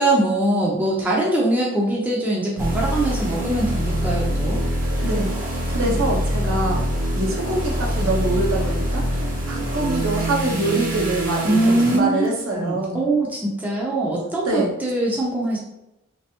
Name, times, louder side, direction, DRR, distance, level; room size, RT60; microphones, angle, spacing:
voice 1, 0.0-4.6 11.4-12.3 12.6-15.6, right 2 dB, 5° right, -4 dB, 0.6 m, -22 dB
sound 1, 2.6-12.0, equal, 40° right, 0.9 m, -24 dB
voice 2, 5.0-5.3 5.7-6.8 7.1-13.0 14.4-14.7, right 2 dB, 70° right, -1 dB, 0.9 m, -25 dB
3.3 x 3.3 x 2.8 m, 0.89 s
head